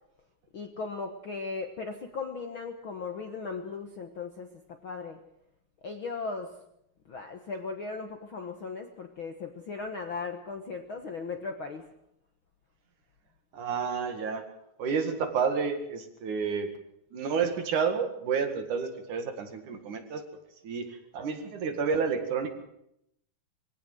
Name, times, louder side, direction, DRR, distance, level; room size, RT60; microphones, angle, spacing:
voice 1, 0.5-5.2 5.8-6.5 7.1-11.8, left 4 dB, 55° left, 5 dB, 1.5 m, -37 dB
voice 2, 13.5-14.4 14.8-16.7 17.1-20.2 20.6-22.5, right 6 dB, 60° right, 7 dB, 3.4 m, -30 dB
22.5 x 17.0 x 7.9 m, 0.77 s
omnidirectional pair, 4.0 m